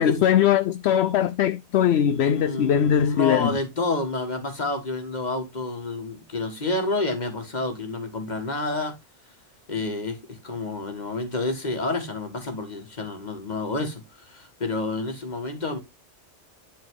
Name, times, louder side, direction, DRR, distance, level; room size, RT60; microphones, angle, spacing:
voice 1, 0.0-3.6, left 9 dB, 65° left, 0.8 m, -21 dB
voice 2, 2.1-9.0 9.7-15.8, left 2 dB, 35° left, 1.9 m, -29 dB
11.0 x 4.2 x 3.7 m
omnidirectional pair, 1.2 m